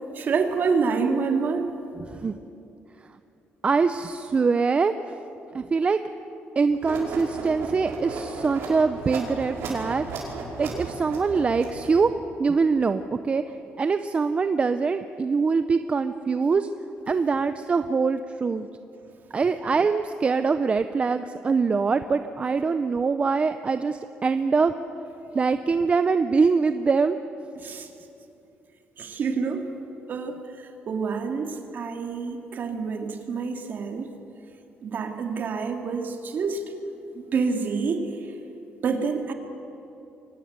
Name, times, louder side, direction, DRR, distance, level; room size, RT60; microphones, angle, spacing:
voice 1, 0.1-1.7 27.6-27.9 29.0-29.7 30.1-34.1 34.8-36.6 37.1-38.3 38.8-39.3, right 5 dB, 50° right, 4 dB, 2.4 m, -27 dB
voice 2, 3.6-4.9 5.5-6.0 6.6-10.2 10.6-12.1 12.4-13.4 13.8-16.7 17.1-18.7 19.3-24.7 25.3-27.2, right 4 dB, 30° right, 10 dB, 0.6 m, -23 dB
sound 1, 6.8-12.1, right 3 dB, 80° right, 5.4 m, -34 dB
23.5 x 19.0 x 8.1 m, 2.8 s
cardioid pair, 125°, 4 cm